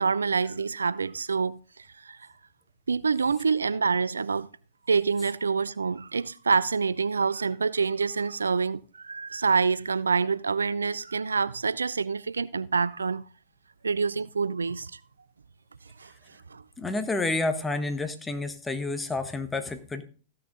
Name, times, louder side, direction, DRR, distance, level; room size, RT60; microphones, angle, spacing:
voice 1, 0.0-1.6 2.0-2.3 2.9-4.5 4.9-13.2 13.8-15.0 16.0-16.1 16.5-16.6, right 5 dB, 90° right, 0.4 m, -26 dB
voice 2, 16.8-20.0, left 2 dB, 10° left, 1.3 m, -29 dB
15.0 x 6.7 x 3.6 m
hypercardioid pair, 105°, 0 cm